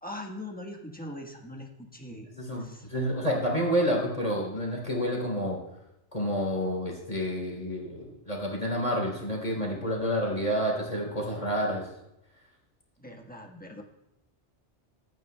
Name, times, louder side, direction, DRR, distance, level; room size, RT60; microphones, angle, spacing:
voice 1, 0.0-2.3 2.6-2.9 13.0-13.8, left 1 dB, 10° left, 0 dB, 1.3 m, -41 dB
voice 2, 2.3-5.6 6.1-11.9, equal, 30° left, -1 dB, 3.3 m, -29 dB
26.0 x 9.3 x 2.2 m, 0.88 s
omnidirectional pair, 1.2 m